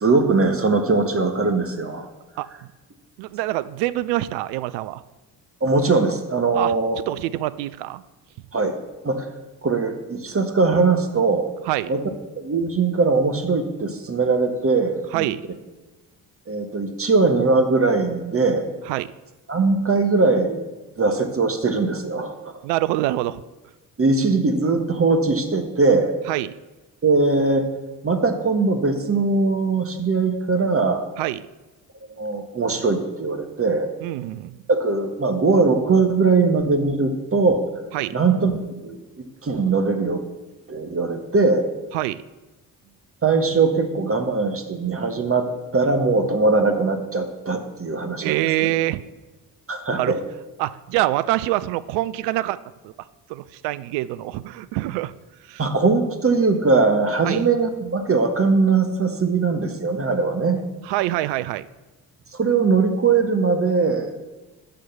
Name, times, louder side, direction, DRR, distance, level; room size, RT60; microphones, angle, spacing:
voice 1, 0.0-2.1 5.6-7.0 8.5-8.8 9.0-9.3 9.6-11.5 11.9-12.0 12.4-15.3 16.5-18.7 19.5-20.6 21.0-22.6 24.0-26.1 27.0-27.7 28.0-31.0 32.2-33.9 34.7-37.6 38.1-38.5 38.8-40.2 40.7-41.6 43.2-45.5 45.7-48.7 49.7-50.2 55.6-60.6 62.3-64.1, right 4 dB, 30° right, 6 dB, 1.4 m, -20 dB
voice 2, 3.2-5.0 6.5-6.8 7.1-8.0 11.7-11.9 15.1-15.4 18.9-19.1 22.6-23.4 26.3-26.5 31.2-31.5 34.0-34.6 37.9-38.2 41.9-42.2 48.2-49.0 49.9-50.1 50.6-52.6 52.8-52.9 53.3-55.1 55.5-55.6 57.2-57.4 60.8-61.7, right 16 dB, 65° right, 16 dB, 0.5 m, -25 dB
8.0 x 6.2 x 6.9 m, 1.1 s
hypercardioid pair, 50°, 46 cm